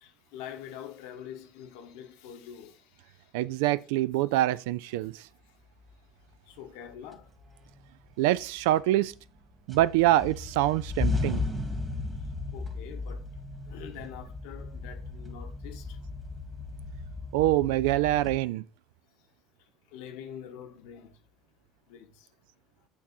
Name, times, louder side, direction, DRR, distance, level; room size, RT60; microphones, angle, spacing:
voice 1, 0.0-2.8 6.6-7.3 12.5-13.3 13.7-15.9 19.9-21.1 21.9-22.1, left 9 dB, 70° left, 1.0 m, -44 dB
voice 2, 3.3-5.2 8.2-9.1 9.7-11.4 17.3-18.6, right 15 dB, 70° right, 0.3 m, -25 dB
sound 1, 6.5-6.6 7.1-7.8 8.2-9.4 9.7-18.4, left 3 dB, 20° right, 1.8 m, -35 dB
8.4 x 2.8 x 4.3 m
hypercardioid pair, 65°, 0 cm